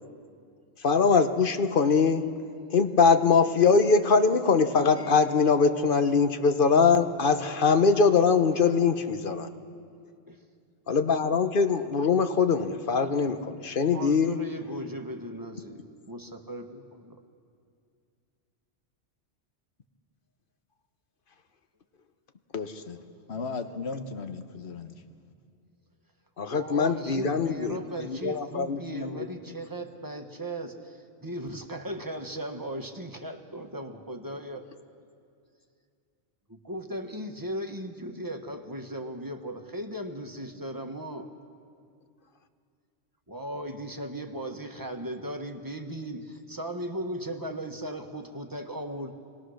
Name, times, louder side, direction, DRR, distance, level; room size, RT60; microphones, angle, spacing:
voice 1, 0.8-2.2 2.7-9.5 10.9-14.4 26.4-27.8 28.1-29.2, left 5 dB, 50° left, 9 dB, 1.1 m, -22 dB
voice 2, 13.9-17.2 26.5-34.6 36.5-41.3 43.3-49.1, right 1 dB, 20° right, 4 dB, 1.3 m, -37 dB
voice 3, 22.5-23.0 23.3-24.9, left 4 dB, 65° left, 8 dB, 1.4 m, -35 dB
26.0 x 19.0 x 6.4 m, 2.4 s
omnidirectional pair, 1.2 m